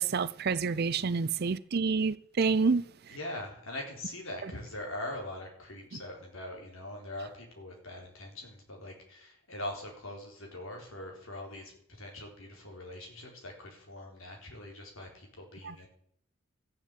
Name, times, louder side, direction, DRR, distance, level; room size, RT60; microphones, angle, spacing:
voice 1, 0.0-2.8 15.6-15.7, right 5 dB, 45° right, 0.5 m, -28 dB
voice 2, 3.1-15.9, left 1 dB, 70° left, 4.0 m, -42 dB
14.5 x 7.4 x 7.6 m
head